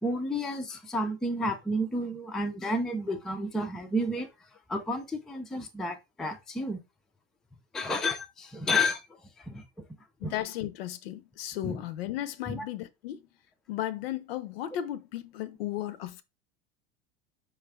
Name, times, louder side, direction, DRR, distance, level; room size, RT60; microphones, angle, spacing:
voice 1, 0.0-4.3 4.7-6.8 7.7-9.0 9.4-9.8 10.2-10.3 11.6-11.8 12.5-12.7, left 1 dB, ahead, 0.3 m, -31 dB
voice 2, 10.2-13.2 13.7-16.2, left 12 dB, 65° left, 0.5 m, -35 dB
4.6 x 2.3 x 3.3 m
hypercardioid pair, 85°, 32 cm